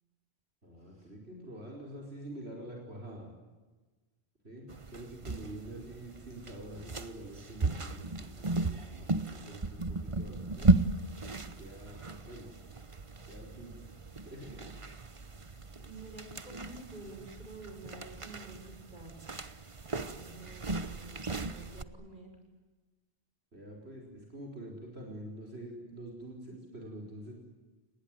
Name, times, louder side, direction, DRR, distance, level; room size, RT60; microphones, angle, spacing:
voice 1, 0.6-3.3 4.4-10.7 11.4-12.5 13.3-13.9 14.3-14.6 20.1-20.6 23.5-27.3, right 1 dB, 80° right, 0 dB, 5.3 m, -46 dB
sound 1, 4.7-21.8, right 3 dB, 30° right, 1.1 m, -35 dB
voice 2, 15.8-19.3 20.0-22.3, right 2 dB, 50° right, 2 dB, 7.6 m, -49 dB
29.5 x 20.0 x 9.3 m, 1.2 s
omnidirectional pair, 1.1 m